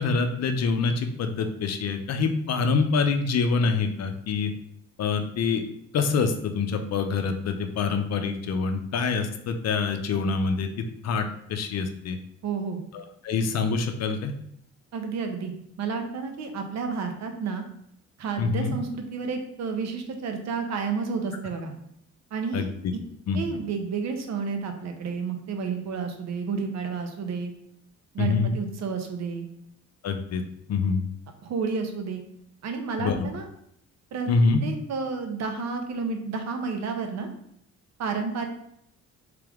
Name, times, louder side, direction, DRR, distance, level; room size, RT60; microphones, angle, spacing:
voice 1, 0.0-4.5 5.0-5.6 5.9-10.7 11.0-12.2 12.9-14.3 18.4-18.8 22.5-22.7 23.3-23.4 28.2-28.5 30.0-30.4 30.7-31.0 33.0-33.3 34.3-34.6, left 4 dB, 60° left, 7 dB, 0.6 m, -25 dB
voice 2, 12.4-12.8 14.9-17.6 18.2-21.7 22.3-23.0 23.3-27.5 28.1-29.5 31.4-32.2 32.6-33.5 34.1-34.3 34.6-37.3 38.0-38.5, right 5 dB, 60° right, 5 dB, 0.8 m, -31 dB
3.3 x 3.3 x 3.5 m, 0.76 s
cardioid pair, 90°, 30 cm